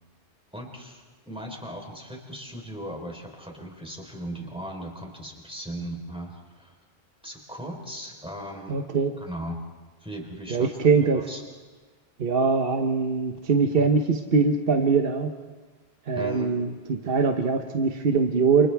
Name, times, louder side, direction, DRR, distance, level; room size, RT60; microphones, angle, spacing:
voice 1, 0.5-6.7 7.2-8.8 9.2-9.6 10.0-10.7 11.0-11.4 13.7-13.9 16.1-16.5, right 1 dB, 5° right, 0 dB, 3.9 m, -37 dB
voice 2, 8.7-9.2 10.5-11.2 12.2-15.3 16.1-18.7, right 4 dB, 60° right, 4 dB, 1.2 m, -22 dB
29.5 x 28.5 x 3.5 m, 1.4 s
omnidirectional pair, 1.1 m